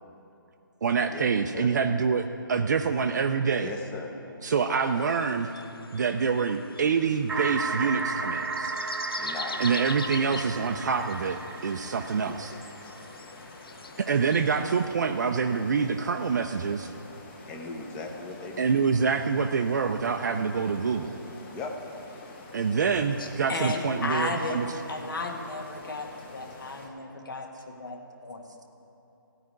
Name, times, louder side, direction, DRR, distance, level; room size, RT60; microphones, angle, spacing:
voice 1, 0.8-3.7 4.4-5.5 5.9-8.7 9.6-12.5 14.0-16.9 18.6-21.2 22.5-24.7, right 5 dB, 50° right, 5 dB, 0.5 m, -26 dB
voice 2, 3.6-4.2 9.2-9.7 12.2-12.3 12.8-12.9 17.4-18.7 21.4-21.7 22.7-22.8, left 3 dB, 10° left, 2 dB, 0.8 m, -38 dB
sound 1, 4.8-14.9, left 4 dB, 85° left, 0.7 m, -43 dB
sound 2, 7.3-13.0, right 4 dB, 70° right, 1.0 m, -34 dB
sound 3, 9.5-26.9, left 3 dB, 30° left, 1.4 m, -48 dB
voice 3, 23.2-24.6 24.9-28.4, left 3 dB, 65° left, 2 dB, 1.6 m, -34 dB
14.5 x 5.0 x 9.4 m, 2.9 s
hypercardioid pair, 160°, 12 cm